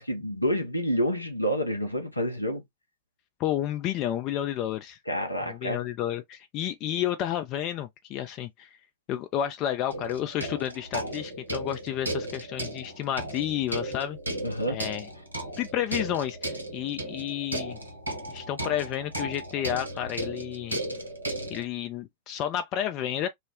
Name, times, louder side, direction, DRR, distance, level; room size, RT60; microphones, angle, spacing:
voice 1, 0.0-2.6 5.1-5.8 14.4-14.8, equal, 85° left, 0.7 m, -28 dB
voice 2, 3.4-5.0 5.4-8.7 9.1-14.2 14.7-15.1 15.6-17.8 18.3-20.8 21.5-23.3, left 11 dB, 40° left, 0.4 m, -31 dB
sound 1, 9.9-21.6, right 1 dB, 85° right, 0.7 m, -35 dB
2.4 x 2.0 x 3.4 m
figure-of-eight pair, 90°, 0 cm